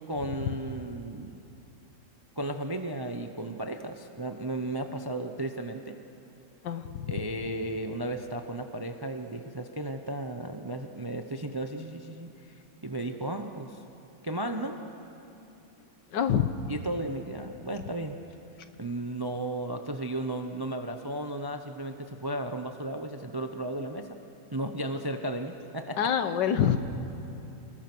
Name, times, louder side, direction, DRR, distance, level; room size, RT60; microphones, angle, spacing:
voice 1, 0.1-1.4 2.4-6.0 7.1-12.5 12.8-13.8 14.2-14.8 16.7-18.2 18.8-24.1 24.5-26.0, right 1 dB, 25° right, 6 dB, 0.5 m, -34 dB
voice 2, 6.6-7.2 16.1-16.5 26.0-26.8, left 9 dB, 80° left, 10 dB, 1.7 m, -26 dB
29.5 x 21.0 x 6.2 m, 2.9 s
omnidirectional pair, 1.9 m